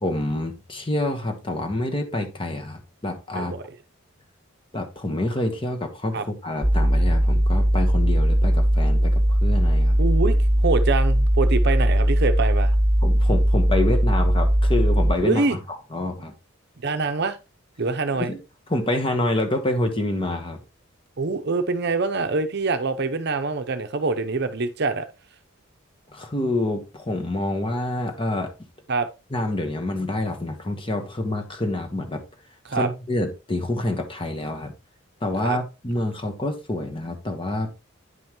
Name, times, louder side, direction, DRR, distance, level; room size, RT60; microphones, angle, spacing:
voice 1, 0.0-3.5 4.7-10.0 13.0-16.3 18.2-18.4 18.7-20.6 26.1-28.5 29.3-32.2 32.7-34.7 35.2-37.7, left 1 dB, 25° left, 1.2 m, -27 dB
voice 2, 3.3-3.7 6.1-6.2 10.0-12.7 15.2-15.6 16.8-17.4 17.8-18.3 21.2-25.1 28.9-29.1 32.7-32.9 35.4-35.6, right 3 dB, 55° right, 0.7 m, -25 dB
sound 1, 6.6-15.2, equal, 5° right, 1.9 m, -19 dB
9.6 x 5.6 x 3.0 m
head